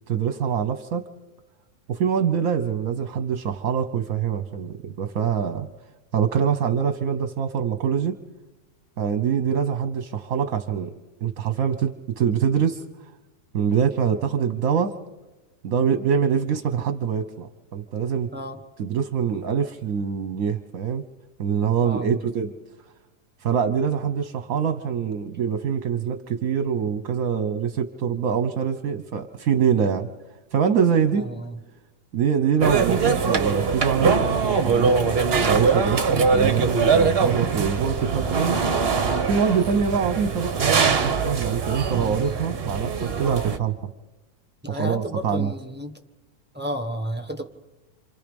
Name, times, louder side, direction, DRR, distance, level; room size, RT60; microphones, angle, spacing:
voice 1, 0.1-1.0 1.9-5.7 6.1-8.2 9.0-10.9 11.2-12.8 13.5-15.0 15.6-18.3 18.8-21.0 21.4-22.5 23.4-30.1 30.5-31.3 32.1-34.9 35.5-38.6 39.3-43.9 44.7-45.5, right 7 dB, 60° right, 9 dB, 1.3 m, -24 dB
voice 2, 21.8-22.2 31.1-31.6 42.0-42.4 44.6-46.0 46.5-47.4, equal, 5° right, 6 dB, 1.2 m, -32 dB
sound 1, 32.6-43.6, right 5 dB, 40° right, 1.2 m, -22 dB
27.5 x 27.5 x 5.3 m, 1.1 s
omnidirectional pair, 1.8 m